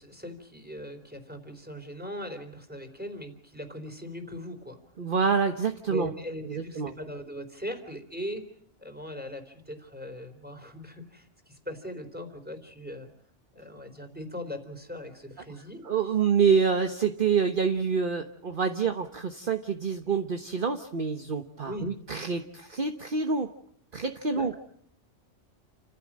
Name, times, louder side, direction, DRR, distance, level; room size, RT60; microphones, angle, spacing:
voice 1, 0.0-4.8 5.9-8.4 8.8-13.1 13.5-15.9 21.7-22.0 24.3-24.5, equal, 5° right, 6 dB, 3.8 m, -39 dB
voice 2, 5.0-6.1 6.4-6.9 15.8-23.5 23.9-24.5, right 6 dB, 45° right, 5 dB, 1.3 m, -27 dB
29.5 x 15.5 x 7.5 m, 0.64 s
omnidirectional pair, 1.3 m